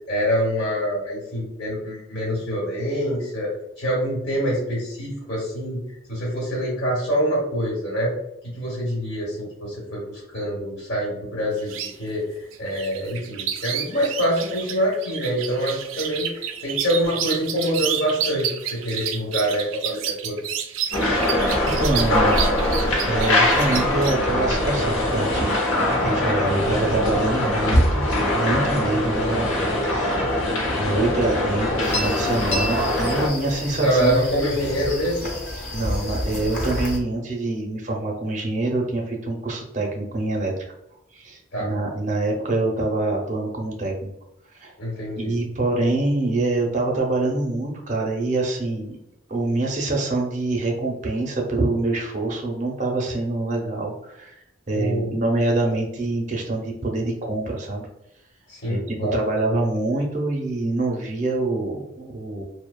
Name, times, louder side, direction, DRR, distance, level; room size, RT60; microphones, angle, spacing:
voice 1, 0.1-5.8 6.1-8.1 8.6-11.7 12.0-12.2 12.6-20.4 33.8-35.3 41.5-41.7 44.8-45.4 54.7-55.2 58.5-59.2, equal, 75° left, -5 dB, 1.0 m, -25 dB
sound 1, 11.6-11.9 12.5-24.2, right 9 dB, 90° right, 0.3 m, -30 dB
sound 2, 20.9-33.3, left 1 dB, 90° left, 0.6 m, -22 dB
voice 2, 21.6-22.5 23.1-25.5 26.0-28.0 28.3-29.5 29.8-34.2 35.7-40.5 41.1-43.9 44.5-44.7 45.1-49.0 49.3-54.3 54.7-57.9 58.7-62.4, right 2 dB, 40° right, 0 dB, 0.5 m, -25 dB
sound 3, 31.8-37.0, left 1 dB, 40° left, 0.6 m, -30 dB
2.7 x 2.0 x 2.2 m, 0.83 s
head